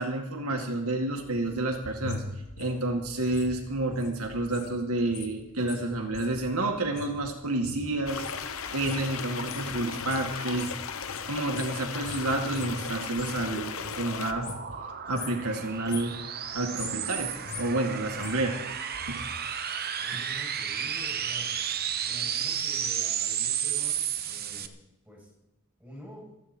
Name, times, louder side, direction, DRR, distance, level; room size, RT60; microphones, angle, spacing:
voice 1, 0.0-2.2 2.6-8.5 8.7-10.7 11.3-14.5 15.1-16.2 16.5-18.6 19.1-19.3 20.1-20.2, right 2 dB, 75° right, 2 dB, 2.1 m, -30 dB
sound 1, 1.2-4.7 5.0-13.5 13.7-14.8 15.1-15.4 15.7-16.2 16.6-19.2 19.5-19.6, left 3 dB, 85° left, 2.9 m, -42 dB
sound 2, 8.1-14.3, left 6 dB, 65° left, 1.1 m, -36 dB
sound 3, 13.3-24.7, right 9 dB, 45° right, 1.0 m, -33 dB
voice 2, 20.0-21.5 22.0-24.7 25.0-25.3 25.8-26.2, equal, 5° right, -4 dB, 7.7 m, -47 dB
27.5 x 9.4 x 4.5 m, 0.92 s
head